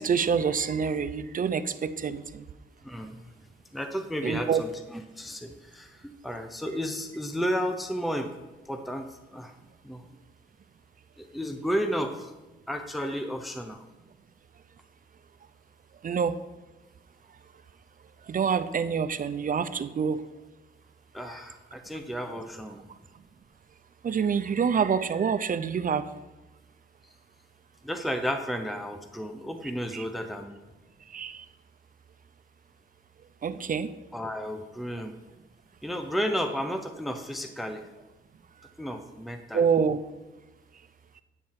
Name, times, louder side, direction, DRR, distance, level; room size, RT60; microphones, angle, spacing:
voice 1, 0.0-2.4 4.2-4.6 16.0-16.3 18.3-20.2 21.2-21.4 24.0-26.0 29.9-30.1 31.1-31.4 33.4-33.9 39.5-40.0, right 6 dB, 45° right, 11 dB, 0.5 m, -26 dB
voice 2, 2.8-3.3 3.7-8.3 8.6-9.5 9.8-10.0 11.2-12.3 12.7-13.8 21.1-22.8 27.8-30.6 34.1-35.1 35.8-37.9 38.8-39.7, equal, ahead, 6 dB, 0.6 m, -32 dB
9.5 x 4.3 x 7.3 m, 1.1 s
wide cardioid pair, 120°, 20 cm